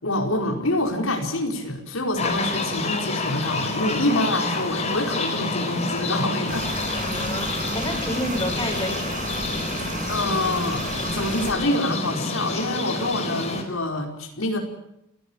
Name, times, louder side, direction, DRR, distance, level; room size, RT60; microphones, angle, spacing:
voice 1, 0.0-6.8 9.8-10.8 11.1-14.6, left 1 dB, 85° left, 2 dB, 4.9 m, -26 dB
sound 1, 2.2-13.6, left 3 dB, 35° left, 4.2 m, -28 dB
sound 2, 6.5-11.5, right 3 dB, 40° right, 5.5 m, -33 dB
voice 2, 7.0-9.3, left 1 dB, 15° left, -3 dB, 6.7 m, -30 dB
29.5 x 17.0 x 7.1 m, 0.83 s
head